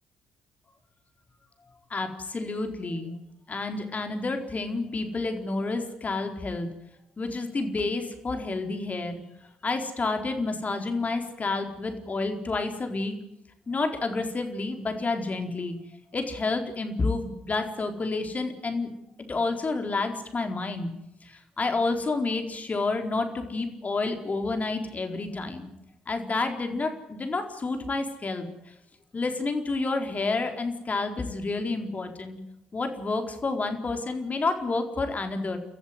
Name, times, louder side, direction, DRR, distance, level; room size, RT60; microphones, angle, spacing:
voice 1, 1.9-3.1 3.5-6.7 7.2-9.2 9.6-13.1 13.7-15.7 16.1-18.9 19.3-20.9 21.2-25.7 26.1-28.4 29.1-32.4 32.7-35.6, left 3 dB, 35° left, 5 dB, 4.3 m, -29 dB
29.5 x 14.5 x 9.5 m, 0.87 s
figure-of-eight pair, 45°, 4 cm